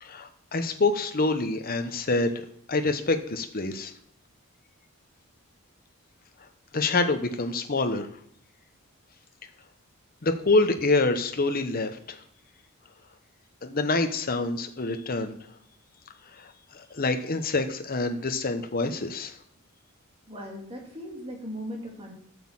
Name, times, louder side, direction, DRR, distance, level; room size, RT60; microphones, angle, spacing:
voice 1, 0.0-3.9 6.7-8.1 10.2-12.2 13.6-15.3 16.4-19.3, left 3 dB, 40° left, 7 dB, 0.9 m, -26 dB
voice 2, 20.3-22.1, equal, 25° right, 0 dB, 2.4 m, -38 dB
8.2 x 6.4 x 7.3 m, 0.68 s
head